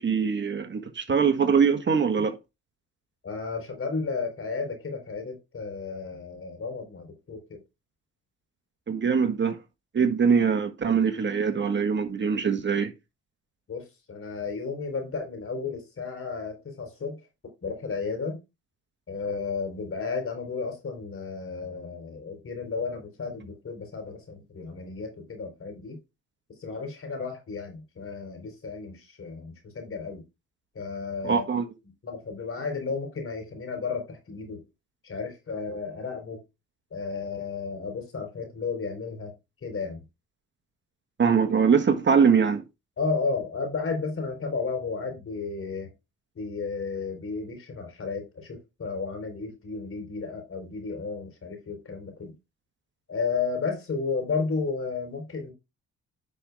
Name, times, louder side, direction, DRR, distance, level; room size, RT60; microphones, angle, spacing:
voice 1, 0.0-2.4 8.9-9.6 9.9-12.9 31.2-31.7 41.2-42.6, right 6 dB, 40° right, 1.5 m, -23 dB
voice 2, 3.2-7.6 13.7-17.2 17.6-18.4 19.1-26.0 26.6-30.2 30.7-31.4 32.0-34.6 35.0-36.4 36.9-39.3 39.6-40.0 43.0-45.9 46.4-52.3 53.1-55.5, left 4 dB, 45° left, 4.1 m, -33 dB
10.0 x 5.4 x 3.5 m
cardioid pair, 90°, 30 cm